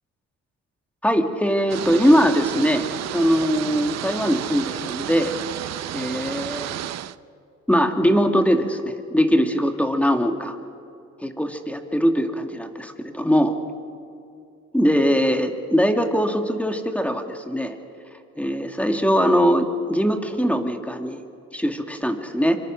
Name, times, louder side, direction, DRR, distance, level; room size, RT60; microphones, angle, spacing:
voice 1, 1.0-2.8 3.1-5.3 5.9-6.7 7.7-10.6 11.2-13.5 14.7-17.8 18.4-21.2 21.5-22.6, equal, 5° left, 4 dB, 2.2 m, -21 dB
rain heavy, 1.7-7.2, right 12 dB, 60° right, 0.7 m, -31 dB
25.5 x 24.0 x 6.4 m, 2.5 s
cardioid pair, 90°, 30 cm